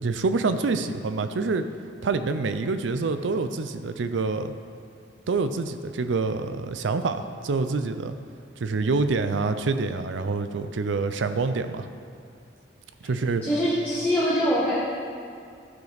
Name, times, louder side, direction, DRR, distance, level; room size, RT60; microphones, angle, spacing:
voice 1, 0.0-1.7 2.0-4.5 5.3-8.1 8.6-11.9 13.0-13.4, right 4 dB, 90° right, 10 dB, 0.5 m, -26 dB
voice 2, 13.4-14.7, equal, 10° left, -12 dB, 1.4 m, -23 dB
13.0 x 5.2 x 3.9 m, 2.4 s
head